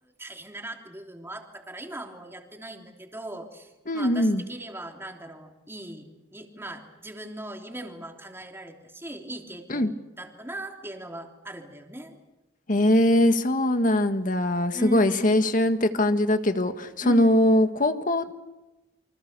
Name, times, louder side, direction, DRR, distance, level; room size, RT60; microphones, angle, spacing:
voice 1, 0.0-12.2 14.7-15.3 17.0-17.5, right 1 dB, 15° right, 2 dB, 3.2 m, -39 dB
voice 2, 3.9-4.4 9.7-9.9 12.7-18.3, left 1 dB, 50° left, 8 dB, 1.7 m, -22 dB
29.0 x 25.0 x 6.9 m, 1.0 s
head